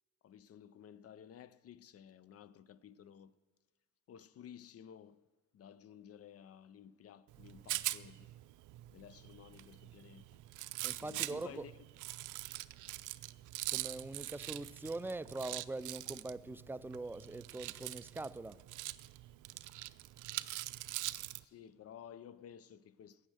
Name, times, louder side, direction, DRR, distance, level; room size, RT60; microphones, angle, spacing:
voice 1, 0.2-3.4 4.1-5.2 5.5-8.3 8.9-10.4 11.0-11.7 21.4-23.3, left 9 dB, 50° left, 0.5 m, -54 dB
Rattle, 7.3-21.4, right 17 dB, 80° right, 0.4 m, -43 dB
voice 2, 10.8-11.7 13.7-18.6, right 2 dB, 10° right, 0.3 m, -43 dB
16.5 x 6.6 x 6.4 m
cardioid pair, 90°, 30 cm